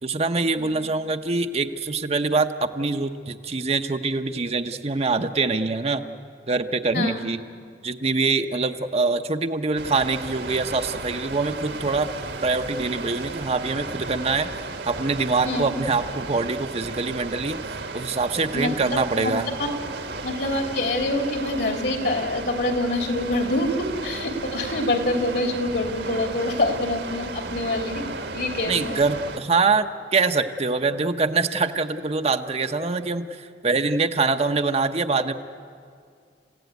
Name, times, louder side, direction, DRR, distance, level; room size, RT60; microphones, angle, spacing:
voice 1, 0.0-6.0 6.5-7.4 7.8-12.1 12.4-14.5 14.8-17.6 17.9-19.5 28.7-35.3, right 3 dB, 35° right, 7 dB, 0.9 m, -24 dB
Water, 9.8-29.4, right 3 dB, 75° right, 1.9 m, -34 dB
voice 2, 18.5-19.3 19.6-19.7 20.2-28.1 28.3-29.0, left 2 dB, 65° left, 4 dB, 3.1 m, -26 dB
29.5 x 16.0 x 9.3 m, 2.2 s
head